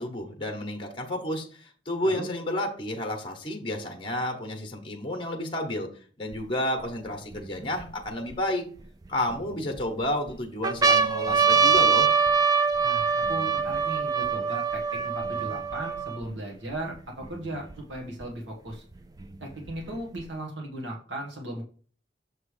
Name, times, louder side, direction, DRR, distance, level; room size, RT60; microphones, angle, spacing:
voice 1, 0.0-5.9 6.2-8.7 9.1-12.1, left 1 dB, 25° left, 4 dB, 1.0 m, -31 dB
sound 1, 6.3-6.4 7.1-8.3 9.1-9.8 10.3-10.4 10.6-16.3 17.0-17.1 17.2-18.2 19.2-20.2, right 5 dB, 20° right, 0.4 m, -24 dB
voice 2, 12.8-18.8 19.4-21.6, right 1 dB, 85° right, -1 dB, 1.4 m, -37 dB
6.6 x 3.2 x 4.8 m, 0.43 s
head